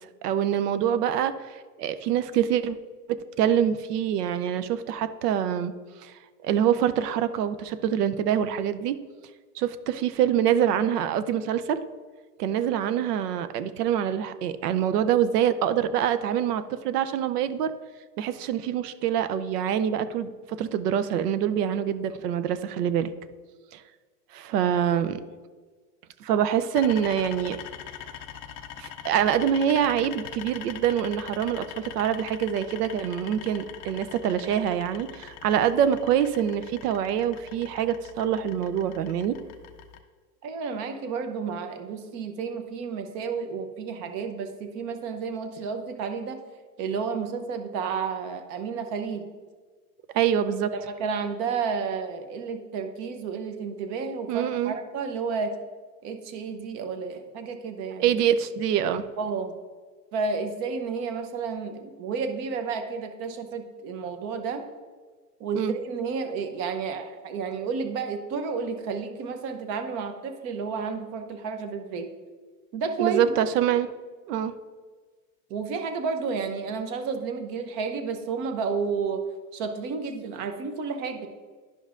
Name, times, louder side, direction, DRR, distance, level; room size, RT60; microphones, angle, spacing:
voice 1, 0.2-2.8 3.1-5.7 6.0-6.1 6.4-9.0 9.6-11.9 12.4-17.7 18.2-23.1 23.7-23.8 24.3-25.2 26.2-27.6 28.8-39.4 50.1-50.7 54.3-54.7 57.9-59.1 65.5-65.7 73.0-73.9 74.3-74.5, right 9 dB, 75° right, 12 dB, 0.7 m, -25 dB
sound 1, 26.7-40.0, left 9 dB, 35° left, 0.4 m, -42 dB
voice 2, 40.4-46.4 46.8-49.3 50.7-55.5 56.0-58.2 59.2-59.6 60.1-64.6 65.4-72.1 72.7-73.2 75.5-79.2 79.5-81.3, right 5 dB, 35° right, 7 dB, 0.8 m, -31 dB
11.5 x 5.3 x 2.5 m, 1.4 s
supercardioid pair, 145°, 47 cm